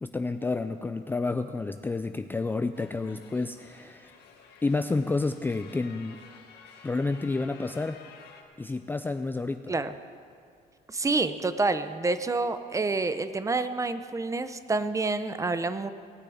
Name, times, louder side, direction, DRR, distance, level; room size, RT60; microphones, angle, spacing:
voice 1, 0.0-4.1 4.6-6.2 6.8-8.0 8.6-9.7, left 3 dB, 10° left, 9 dB, 0.3 m, -30 dB
sound 1, 2.7-8.4, left 6 dB, 75° left, 1.6 m, -52 dB
voice 2, 10.9-15.9, right 3 dB, 20° right, 11 dB, 0.7 m, -28 dB
18.5 x 6.7 x 8.6 m, 2.2 s
cardioid pair, 110°, 17 cm